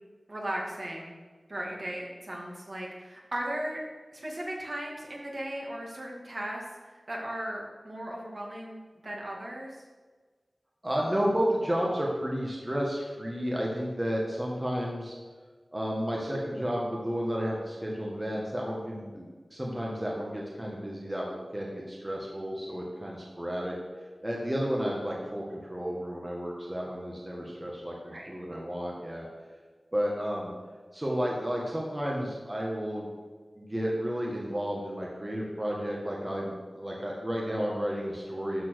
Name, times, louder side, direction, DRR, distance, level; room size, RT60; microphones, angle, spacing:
voice 1, 0.3-1.2 1.5-3.8 4.1-9.8 28.0-28.3, right 1 dB, 45° right, -2 dB, 2.4 m, -37 dB
voice 2, 10.8-15.1 15.7-23.7 24.2-25.4 25.7-29.3 29.9-30.5 30.9-33.1 33.6-38.6, equal, 20° right, -3 dB, 1.7 m, -32 dB
12.5 x 4.6 x 6.4 m, 1.4 s
wide cardioid pair, 75°, 0 cm